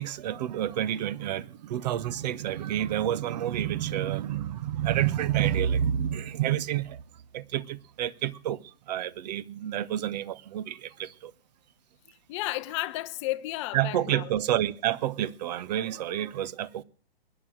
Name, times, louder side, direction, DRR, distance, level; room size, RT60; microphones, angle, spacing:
voice 1, 0.0-7.0 7.3-11.3 13.7-16.8, right 11 dB, 40° right, 0.9 m, -29 dB
voice 2, 12.3-14.3, left 17 dB, 30° left, 0.7 m, -33 dB
21.0 x 10.0 x 6.3 m
figure-of-eight pair, 115°, 31 cm